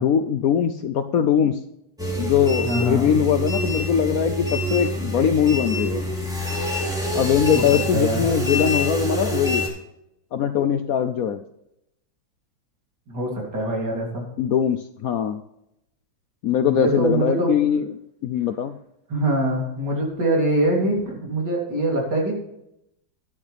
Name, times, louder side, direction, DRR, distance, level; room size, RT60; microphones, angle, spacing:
voice 1, 0.0-1.6 2.2-6.0 7.1-9.6 10.3-11.4 14.4-15.4 16.4-17.9 18.2-18.7, left 8 dB, 70° left, 9 dB, 0.8 m, -21 dB
sound 1, 2.0-9.7, equal, ahead, 2.8 m, -26 dB
voice 2, 2.6-3.1 7.5-7.6 7.9-8.2 13.1-14.2 16.6-17.5 19.1-22.3, right 1 dB, 60° right, -2 dB, 3.7 m, -23 dB
12.0 x 10.0 x 3.4 m, 0.81 s
omnidirectional pair, 2.1 m